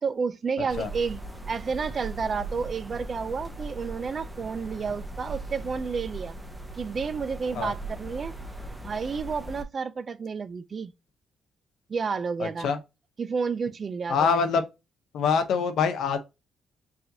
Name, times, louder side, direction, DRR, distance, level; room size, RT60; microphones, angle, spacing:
voice 1, 0.0-6.4 6.8-8.3 8.8-10.9 11.9-12.7 13.2-14.4, right 5 dB, 40° right, 0.4 m, -31 dB
sound 1, 0.7-9.6, right 2 dB, 10° right, 0.7 m, -39 dB
voice 2, 12.4-12.8 14.1-14.6 15.1-16.2, left 6 dB, 75° left, 0.7 m, -24 dB
4.8 x 2.6 x 2.7 m
cardioid pair, 90°, 0 cm